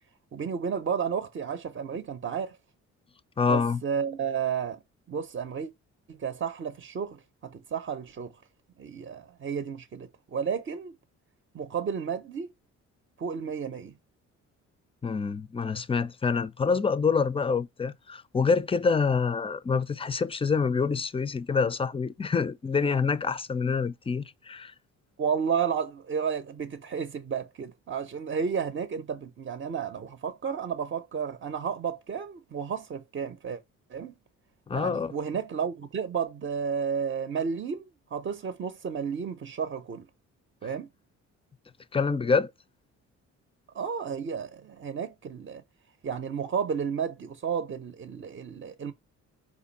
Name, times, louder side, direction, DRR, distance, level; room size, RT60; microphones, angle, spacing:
voice 1, 0.3-2.6 3.5-4.8 5.1-5.7 6.1-8.3 8.8-10.9 11.5-12.5 13.2-13.9 25.2-33.6 33.9-34.1 34.7-40.1 40.6-40.9 43.7-45.6 46.0-48.9, right 6 dB, 40° right, 0.7 m, -32 dB
voice 2, 3.4-3.8 15.0-24.7 34.7-35.1 41.9-42.5, left 5 dB, 20° left, 0.4 m, -26 dB
5.1 x 2.5 x 4.0 m
cardioid pair, 90°, 30 cm